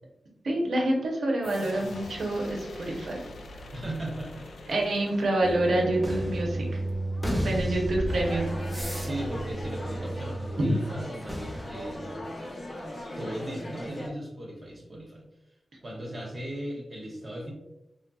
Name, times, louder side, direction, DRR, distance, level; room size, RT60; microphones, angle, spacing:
voice 1, 0.4-3.2 4.7-6.8 7.4-8.5 10.6-10.8, right 1 dB, 80° right, 0 dB, 0.7 m, -27 dB
sound 1, 1.4-6.1, left 2 dB, 85° left, 0.4 m, -44 dB
voice 2, 3.7-4.5 7.6-7.8 8.9-12.3 13.2-15.2 15.8-17.5, right 1 dB, 40° right, -2 dB, 0.7 m, -37 dB
sound 2, 5.4-10.8 11.2-12.0, right 1 dB, 5° left, 0.6 m, -32 dB
sound 3, 8.1-14.1, left 1 dB, 40° left, 0.7 m, -39 dB
3.2 x 2.7 x 2.3 m, 0.92 s
wide cardioid pair, 105°, 0 cm